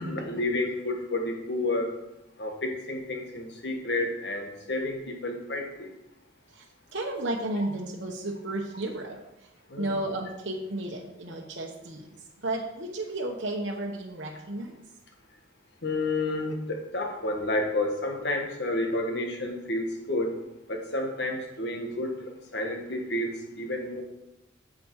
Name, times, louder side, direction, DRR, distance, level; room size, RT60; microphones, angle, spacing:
voice 1, 0.0-1.9 2.4-5.9 9.7-10.0 15.8-20.4 20.7-22.1 22.5-24.0, left 2 dB, 60° left, 3 dB, 1.5 m, -30 dB
voice 2, 6.9-9.2 9.8-12.0 12.4-14.7, right 1 dB, 65° right, -1 dB, 1.1 m, -33 dB
9.2 x 7.7 x 4.7 m, 0.89 s
head